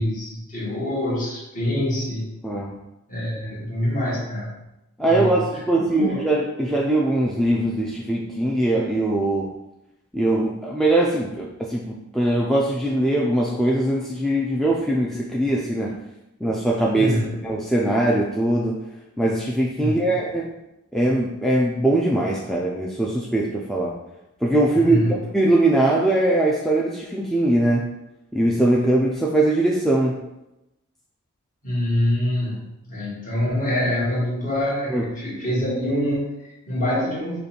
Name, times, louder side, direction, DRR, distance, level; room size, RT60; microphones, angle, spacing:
voice 1, 0.0-2.3 3.1-4.6 5.1-5.4 5.8-6.3 16.9-17.4 19.8-20.2 24.7-25.2 31.6-37.4, left 1 dB, 40° left, -5 dB, 1.5 m, -25 dB
voice 2, 2.4-2.8 5.0-9.5 10.1-15.9 16.4-17.1 17.4-18.8 19.2-20.5 20.9-23.9 24.4-27.9 28.3-30.2 34.9-35.1, right 1 dB, ahead, -4 dB, 0.4 m, -21 dB
5.3 x 2.3 x 4.3 m, 0.92 s
head